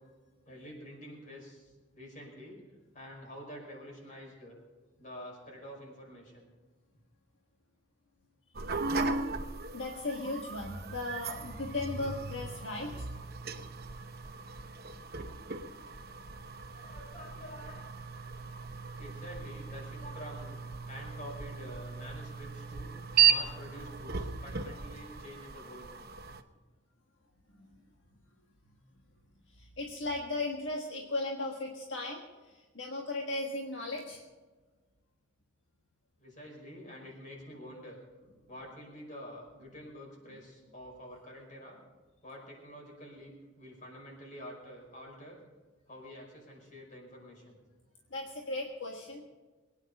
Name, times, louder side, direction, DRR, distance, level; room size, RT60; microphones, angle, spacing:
voice 1, 0.5-2.6 2.9-4.6 5.0-6.5 15.3-15.4 16.7-17.9 19.0-20.6 20.9-23.0 23.3-25.9 36.2-38.0 38.5-41.8 42.2-45.4 45.9-47.6, equal, 45° left, -1 dB, 5.5 m, -48 dB
sound 1, 8.5-26.4, right 6 dB, 55° right, 0.9 m, -35 dB
voice 2, 8.7-9.2 9.7-13.1 27.6-27.8 28.6-28.7 29.5-34.2 40.3-40.4 48.1-49.2, left 2 dB, 75° left, 0 dB, 1.6 m, -37 dB
22.0 x 9.8 x 5.4 m, 1.3 s
head